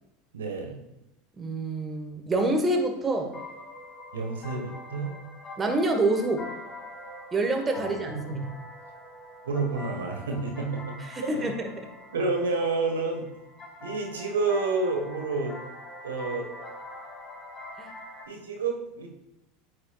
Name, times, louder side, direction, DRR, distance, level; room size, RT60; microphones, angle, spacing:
voice 1, 0.3-0.8 4.1-5.1 7.8-8.5 9.4-11.5 12.1-13.3 13.8-15.6 16.0-16.5 18.3-19.1, right 3 dB, 85° right, 3 dB, 1.3 m, -29 dB
voice 2, 1.4-3.3 5.6-6.4 7.3-8.4 11.1-11.5 17.8-17.9, right 2 dB, 20° right, 4 dB, 1.3 m, -26 dB
sound 1, 2.5-18.2, left 1 dB, 30° left, 2.6 m, -44 dB
8.6 x 6.6 x 2.3 m, 0.94 s
hypercardioid pair, 85°, 0 cm